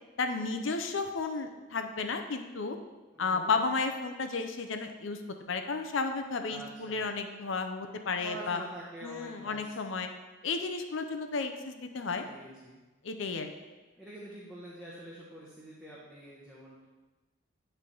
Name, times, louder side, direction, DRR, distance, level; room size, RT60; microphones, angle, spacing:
voice 1, 0.2-2.8 3.2-5.2 5.5-8.6 9.0-10.1 10.4-12.2 13.0-13.5, left 4 dB, 80° left, 6 dB, 0.6 m, -33 dB
voice 2, 3.1-3.5 6.5-7.1 8.2-9.8 12.3-12.8 14.0-16.8, right 1 dB, 5° right, -7 dB, 1.1 m, -46 dB
10.0 x 3.4 x 5.4 m, 1.2 s
head